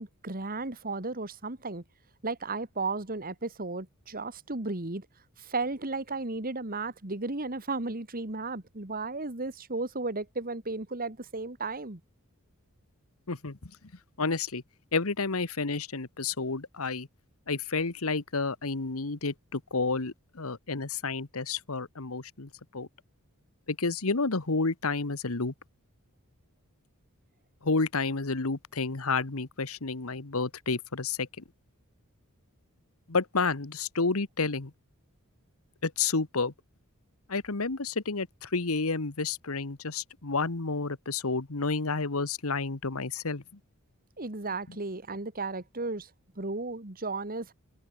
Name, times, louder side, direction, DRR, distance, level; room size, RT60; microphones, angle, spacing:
voice 1, 0.0-1.8 2.2-5.1 5.4-12.0 44.2-46.1 46.4-47.5, right 3 dB, 40° right, 2.2 m, -34 dB
voice 2, 13.3-13.7 14.2-14.6 14.9-17.1 17.5-22.9 23.7-25.5 27.6-31.4 33.1-34.7 35.8-36.5 37.3-43.4, left 4 dB, 70° left, 1.4 m, -30 dB
head